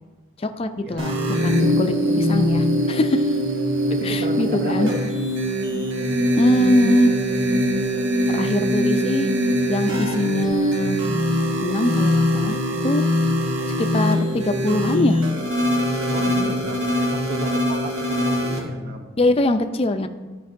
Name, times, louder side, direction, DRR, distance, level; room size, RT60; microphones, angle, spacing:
voice 1, 0.4-3.3 4.0-4.9 6.4-7.2 8.3-9.3 9.7-11.0 11.6-13.1 13.8-15.2 19.2-20.1, left 1 dB, 30° left, 8 dB, 0.4 m, -22 dB
sound 1, 1.0-18.6, equal, 75° right, 1.2 m, -22 dB
voice 2, 3.9-5.1 16.1-19.1, right 1 dB, 55° right, 5 dB, 0.7 m, -32 dB
12.0 x 5.3 x 2.5 m, 1.3 s
head